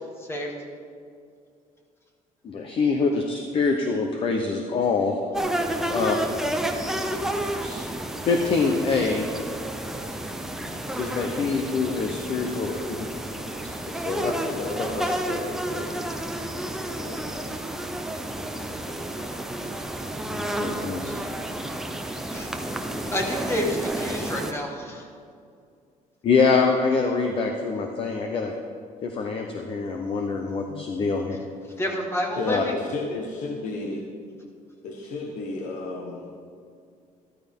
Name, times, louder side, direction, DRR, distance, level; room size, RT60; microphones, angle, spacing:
voice 1, 2.4-5.2 5.9-6.2 7.6-7.8 8.2-9.3 10.9-12.7 13.6-13.7 19.3-19.4 20.3-21.1 26.2-28.5 29.0-31.4 32.4-32.6, left 4 dB, 35° left, 4 dB, 0.8 m, -25 dB
sound 1, 5.3-24.5, right 1 dB, 5° right, 0.7 m, -31 dB
voice 2, 5.7-6.1 12.3-13.0 13.9-15.9 16.9-17.5 20.7-21.0 31.6-31.7 32.3-34.1 34.8-36.3, left 3 dB, 55° left, -1 dB, 1.4 m, -34 dB
voice 3, 23.1-25.0 31.8-32.7, equal, 15° left, 1 dB, 1.6 m, -28 dB
13.0 x 13.0 x 3.6 m, 2.3 s
cardioid pair, 170°, 15 cm